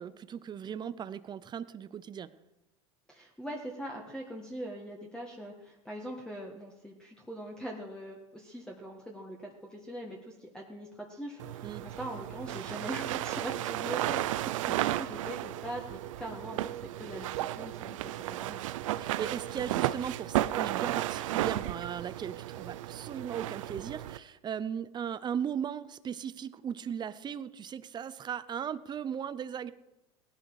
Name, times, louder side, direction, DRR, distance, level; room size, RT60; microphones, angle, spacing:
voice 1, 0.0-2.3 11.6-11.9 19.0-29.7, right 8 dB, 25° right, 14 dB, 0.7 m, -37 dB
voice 2, 3.1-18.6, right 1 dB, 5° left, 0 dB, 1.7 m, -42 dB
sound 1, 11.4-24.2, right 14 dB, 85° right, 0.6 m, -34 dB
17.5 x 11.5 x 4.9 m, 0.94 s
supercardioid pair, 115°, 16 cm